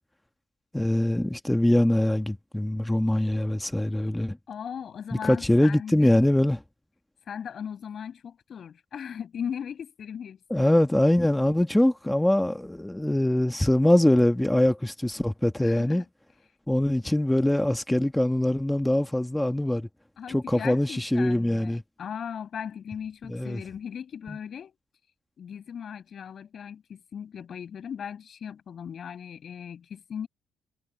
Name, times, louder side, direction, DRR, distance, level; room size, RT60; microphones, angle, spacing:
voice 1, 0.7-4.4 5.1-6.6 10.5-16.0 16.7-19.9 20.3-21.8 23.3-23.6 24.3-24.4, left 1 dB, 5° left, 1.4 m, -23 dB
voice 2, 4.5-6.3 7.3-10.8 15.6-16.0 20.2-24.8 25.4-30.3, left 8 dB, 55° left, 5.8 m, -38 dB
cardioid pair, 90°, 0 cm